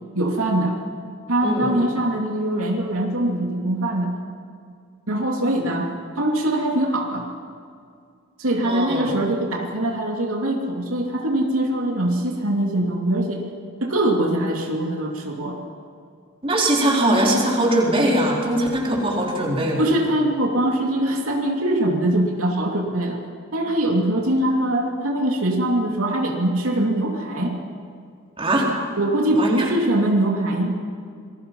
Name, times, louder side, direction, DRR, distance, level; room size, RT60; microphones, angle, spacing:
voice 1, 0.1-0.8 1.3-4.1 5.1-7.3 8.4-13.4 13.8-15.6 19.8-23.2 23.5-27.6 29.0-30.7, right 1 dB, 80° right, 0 dB, 2.8 m, -22 dB
voice 2, 1.4-1.8 8.6-9.1 16.4-19.9 28.4-28.7 29.3-29.6, right 1 dB, 25° right, -3 dB, 4.1 m, -21 dB
27.5 x 21.5 x 5.6 m, 2.2 s
head